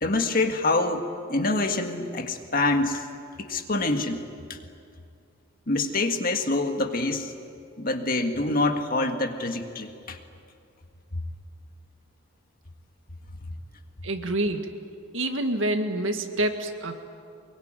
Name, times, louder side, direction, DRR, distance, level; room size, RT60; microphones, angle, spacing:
voice 1, 0.0-3.0 3.4-4.2 4.5-4.6 5.7-7.3 7.8-10.2, left 2 dB, 45° left, 5 dB, 1.8 m, -26 dB
voice 2, 14.0-14.7 15.1-17.0, right 1 dB, 75° right, 6 dB, 1.9 m, -27 dB
24.0 x 22.5 x 9.0 m, 2.4 s
head